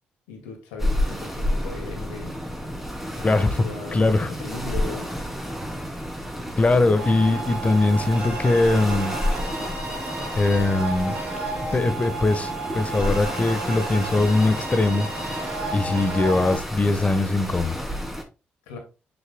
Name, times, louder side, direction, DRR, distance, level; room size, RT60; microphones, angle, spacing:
voice 1, 0.3-2.4 3.1-5.1 18.7-18.8, left 4 dB, 90° left, 2.3 m, -38 dB
sound 1, 0.8-18.2, equal, 5° right, 3.1 m, -31 dB
voice 2, 3.2-3.6 3.9-4.3 6.6-9.2 10.3-11.2 11.7-15.1 15.7-17.8, left 2 dB, 30° left, 1.3 m, -21 dB
sound 2, 7.0-16.6, right 3 dB, 80° right, 4.1 m, -33 dB
8.1 x 6.5 x 2.3 m
hypercardioid pair, 50°, 4 cm